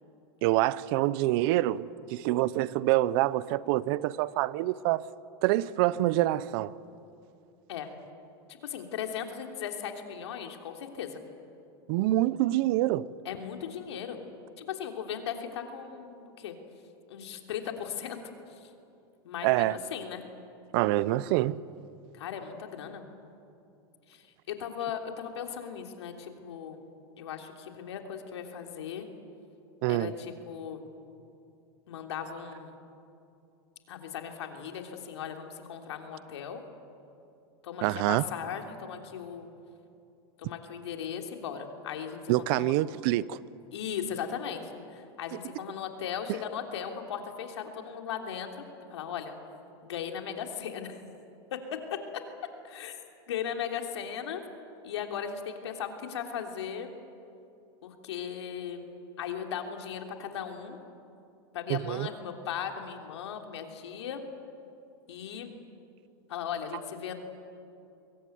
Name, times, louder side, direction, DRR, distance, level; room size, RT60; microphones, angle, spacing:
voice 1, 0.4-5.1 5.4-6.7 11.9-13.1 19.4-19.8 20.7-21.6 29.8-30.1 37.8-38.2 42.3-43.4 61.7-62.1, right 16 dB, 60° right, 19 dB, 0.8 m, -26 dB
voice 2, 8.5-11.2 13.2-14.2 14.6-16.6 17.1-18.2 18.6-18.7 19.2-20.2 22.1-23.0 24.1-26.8 27.2-29.1 29.9-30.9 31.9-32.8 33.9-36.6 37.6-39.5 40.4-42.7 43.7-48.6 48.9-49.3 49.8-51.0 51.5-51.8 52.6-53.0 53.3-54.4 54.8-56.9 57.8-60.8 61.5-64.2 65.1-65.5 66.3-67.1, left 8 dB, 85° left, 4 dB, 3.3 m, -37 dB
23.5 x 22.0 x 9.5 m, 2.7 s
supercardioid pair, 120°, 14 cm